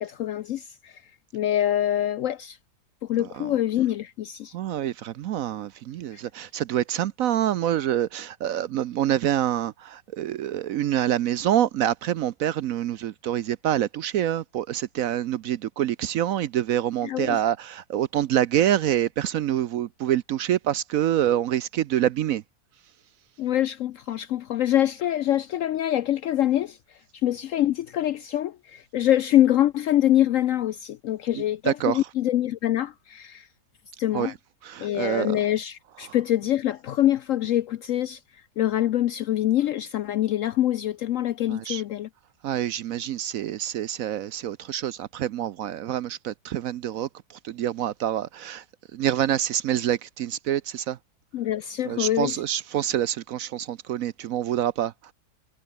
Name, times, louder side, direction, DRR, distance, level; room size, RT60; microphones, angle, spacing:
voice 1, 0.0-0.9 1.3-2.6 3.1-4.5 6.1-6.2 17.0-17.4 23.4-26.8 27.2-33.5 34.0-34.3 34.8-38.2 38.6-42.1 51.3-52.4, left 12 dB, 70° left, 0.8 m, -25 dB
voice 2, 4.5-22.4 31.6-32.0 34.1-34.3 34.6-35.4 41.5-41.8 42.4-47.1 47.4-48.6 48.9-51.0 51.9-54.9, right 11 dB, 65° right, 0.9 m, -26 dB
omnidirectional pair, 1.8 m